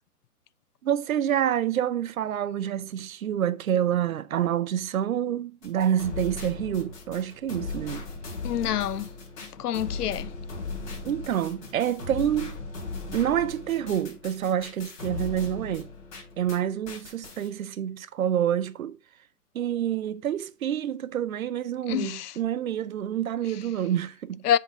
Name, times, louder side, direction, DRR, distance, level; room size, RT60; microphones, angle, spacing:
voice 1, 0.8-8.1 11.0-12.6 13.1-15.9 16.4-19.0 19.5-24.4, right 10 dB, 60° right, 0.7 m, -27 dB
sound 1, 5.6-16.6 16.9-17.5, left 3 dB, 55° left, 3.9 m, -38 dB
voice 2, 8.4-9.1 9.6-10.3 21.9-22.3 24.4-24.6, left 10 dB, 75° left, 0.6 m, -26 dB
7.3 x 4.0 x 5.3 m
hypercardioid pair, 160°, 47 cm